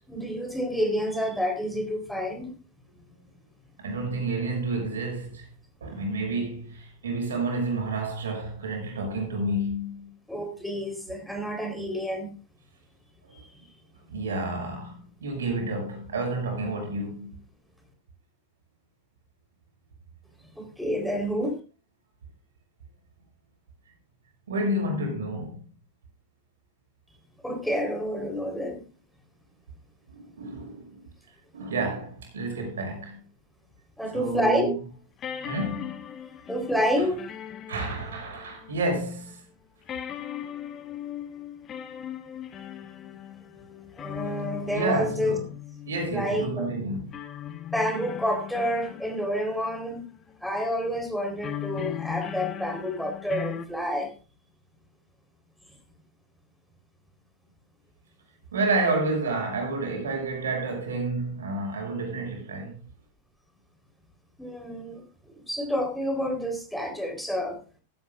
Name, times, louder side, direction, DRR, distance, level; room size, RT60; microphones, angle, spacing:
voice 1, 0.1-2.5 10.3-12.3 13.3-13.4 20.6-21.6 27.4-28.8 34.0-34.7 36.5-37.3 44.0-45.4 46.1-46.7 47.7-50.0 50.4-54.1 64.4-67.6, equal, ahead, 4.1 m, -29 dB
voice 2, 2.9-3.2 3.8-5.5 5.8-10.1 14.1-17.3 24.5-25.7 28.6-28.7 30.1-31.0 31.5-33.2 34.1-34.7 35.4-36.0 37.7-39.5 44.7-45.5 45.9-47.1 58.5-62.8, right 2 dB, 65° right, 6.1 m, -30 dB
sound 1, 34.3-34.4 35.2-39.0 39.3-39.4 39.9-50.4 51.4-53.7, left 10 dB, 30° left, 1.4 m, -38 dB
16.5 x 14.5 x 2.5 m
figure-of-eight pair, 90°, 0 cm